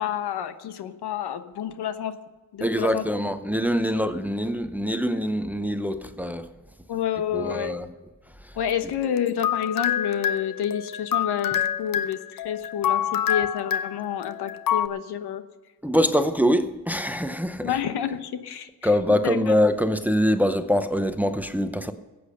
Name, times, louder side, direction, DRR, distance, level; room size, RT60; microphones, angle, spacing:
voice 1, 0.0-2.1 2.5-3.0 6.9-7.7 8.5-15.4 17.6-18.9 19.2-19.6, left 9 dB, 75° left, 1.1 m, -29 dB
voice 2, 2.6-6.5 7.3-7.9 15.8-17.7 18.8-21.9, equal, 5° right, 0.7 m, -24 dB
sound 1, 9.0-14.9, left 9 dB, 55° left, 0.8 m, -27 dB
15.0 x 8.5 x 6.6 m
cardioid pair, 110°, 39 cm